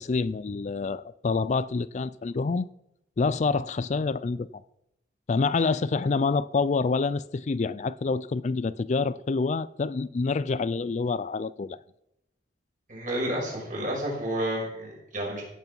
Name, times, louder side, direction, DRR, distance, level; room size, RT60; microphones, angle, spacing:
voice 1, 0.0-2.7 3.2-4.5 5.3-11.8, left 4 dB, 40° left, 0.4 m, -27 dB
voice 2, 12.9-15.4, right 1 dB, 45° right, 5.8 m, -30 dB
16.5 x 8.3 x 5.4 m
head